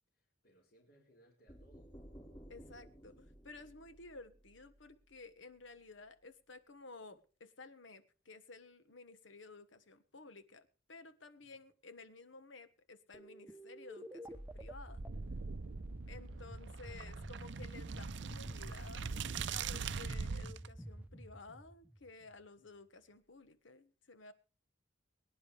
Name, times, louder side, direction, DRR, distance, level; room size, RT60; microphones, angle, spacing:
voice 1, 0.1-1.9 11.4-11.5 16.1-16.6, right 1 dB, 60° left, 4.5 m, -68 dB
sound 1, 1.5-5.2, equal, 20° left, 4.7 m, -56 dB
voice 2, 2.5-15.0 16.1-19.2 19.5-24.3, left 3 dB, 75° left, 1.4 m, -54 dB
sound 2, 13.1-22.5, right 1 dB, 10° right, 0.8 m, -50 dB
sound 3, 15.0-20.7, right 5 dB, 65° right, 0.6 m, -42 dB
23.5 x 10.5 x 3.4 m
head